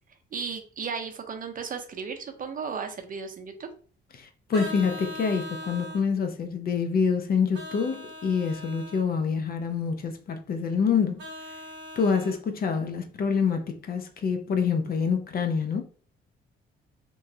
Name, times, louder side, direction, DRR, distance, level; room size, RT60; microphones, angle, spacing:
voice 1, 0.3-3.7, right 6 dB, 45° right, 0.6 m, -35 dB
voice 2, 4.2-11.3 12.0-15.8, left 6 dB, 50° left, 0.5 m, -26 dB
Vehicle horn car horn honking, 4.5-6.1 7.5-9.0 11.2-12.4, left 1 dB, 60° right, 1.0 m, -40 dB
2.9 x 2.2 x 2.7 m
cardioid pair, 90°, 20 cm